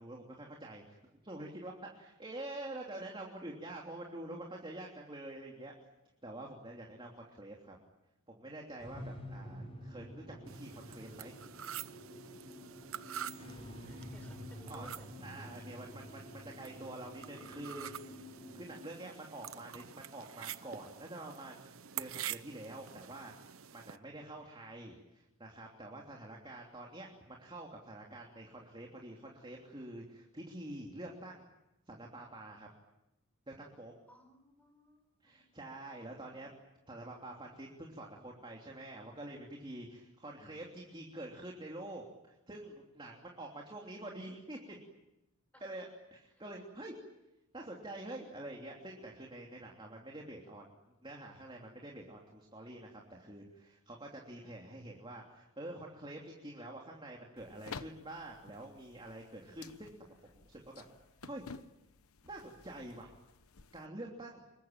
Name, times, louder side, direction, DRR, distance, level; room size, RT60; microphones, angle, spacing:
voice 1, 0.0-5.7 6.2-7.8 8.3-11.3 14.7-14.9 15.2-18.0 18.5-23.3 23.7-31.5 31.9-32.7 33.5-33.9 35.2-36.5 36.9-44.8 45.6-46.9 47.5-60.8 61.2-61.5 62.2-63.1 63.7-64.4, right 1 dB, 25° right, -1 dB, 3.1 m, -47 dB
sound 1, 8.8-18.8, equal, 25° left, 6.2 m, -49 dB
sound 2, 10.5-24.0, right 9 dB, 75° right, 0.9 m, -47 dB
voice 2, 13.8-15.5 34.1-35.4 36.2-36.4 45.5-45.7, left 1 dB, 5° left, 7 dB, 5.1 m, -60 dB
sound 3, 57.4-63.9, left 5 dB, 85° left, 1.0 m, -52 dB
26.0 x 23.0 x 9.0 m, 0.93 s
head